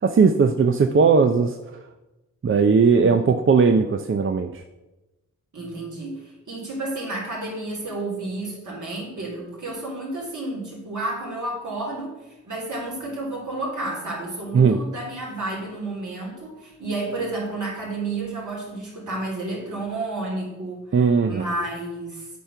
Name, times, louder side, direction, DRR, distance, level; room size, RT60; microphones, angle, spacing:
voice 1, 0.0-1.6 2.4-4.6 14.5-14.8 20.9-21.4, right 5 dB, 40° right, 7 dB, 0.6 m, -18 dB
voice 2, 5.5-20.8 21.2-22.3, right 2 dB, 70° right, -4 dB, 3.1 m, -31 dB
8.3 x 4.5 x 5.7 m, 1.0 s
cardioid pair, 45°, 31 cm